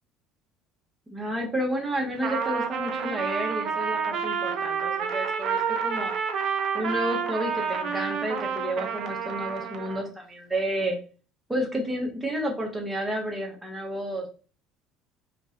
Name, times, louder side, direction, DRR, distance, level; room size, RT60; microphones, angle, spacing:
voice 1, 1.1-6.1 6.7-11.0 11.5-14.3, right 1 dB, 10° right, 0 dB, 1.3 m, -30 dB
Trumpet, 2.1-10.1, right 6 dB, 55° right, 0.5 m, -29 dB
3.9 x 2.6 x 2.5 m, 0.37 s
hypercardioid pair, 65°, 0 cm